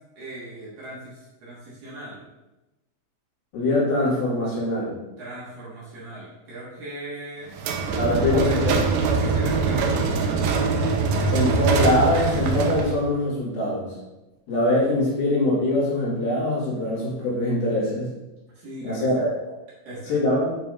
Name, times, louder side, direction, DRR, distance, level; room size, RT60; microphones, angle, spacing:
voice 1, 0.2-2.2 5.2-7.5 8.1-8.6 9.1-10.4 18.6-19.2 19.9-20.1, right 1 dB, 60° right, -7 dB, 2.9 m, -38 dB
voice 2, 3.5-5.0 8.0-8.8 11.3-14.0 14.5-18.1 18.8-19.3 20.1-20.6, left 1 dB, 60° left, -7 dB, 3.6 m, -23 dB
sound 1, 7.6-13.0, right 4 dB, 85° right, 2.2 m, -23 dB
9.0 x 5.7 x 2.5 m, 1.0 s
omnidirectional pair, 5.2 m